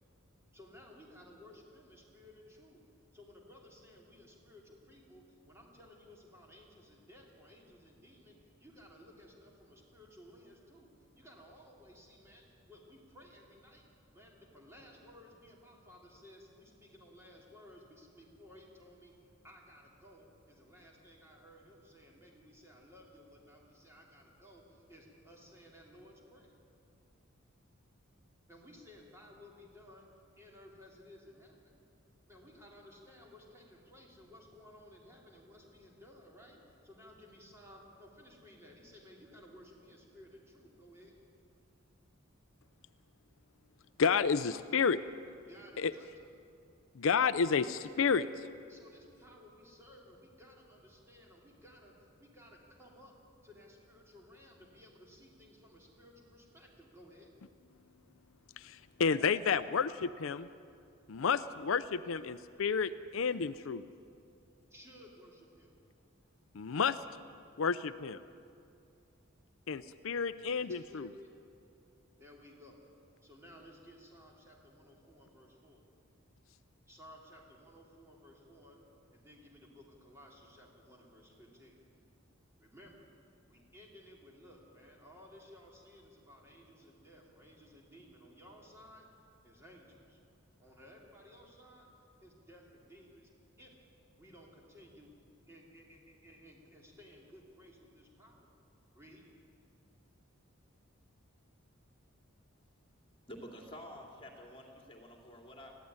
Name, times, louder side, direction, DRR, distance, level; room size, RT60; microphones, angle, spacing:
voice 1, 0.5-2.8 3.1-13.8 14.1-26.5 28.5-30.1 30.4-31.8 32.3-41.1 45.5-46.1 48.7-53.1 53.4-57.3 64.7-65.7 70.5-71.3 72.2-72.8 73.2-75.8 76.9-78.8 79.1-81.8 82.6-83.1 83.5-89.1 89.4-90.2 90.6-91.9 92.2-93.3 93.6-93.7 94.2-95.1 95.5-98.5 98.9-99.3, left 1 dB, 15° right, -2 dB, 3.4 m, -57 dB
voice 2, 44.0-45.0 45.8-45.9 46.9-48.5 58.6-60.5 61.1-63.8 66.5-67.0 67.6-68.2 69.7-71.1, left 6 dB, 70° left, 13 dB, 0.5 m, -31 dB
voice 3, 103.3-105.8, equal, 25° left, 1 dB, 2.7 m, -49 dB
20.5 x 15.0 x 9.7 m, 2.5 s
head